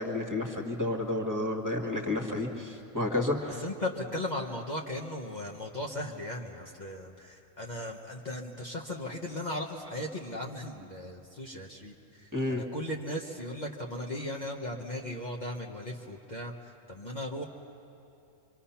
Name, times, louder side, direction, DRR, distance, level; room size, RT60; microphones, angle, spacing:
voice 1, 0.0-3.6 12.3-12.6, left 2 dB, 15° right, 1 dB, 1.7 m, -31 dB
voice 2, 3.6-17.4, left 1 dB, 35° left, -1 dB, 1.3 m, -37 dB
26.0 x 24.5 x 5.8 m, 2.7 s
omnidirectional pair, 1.3 m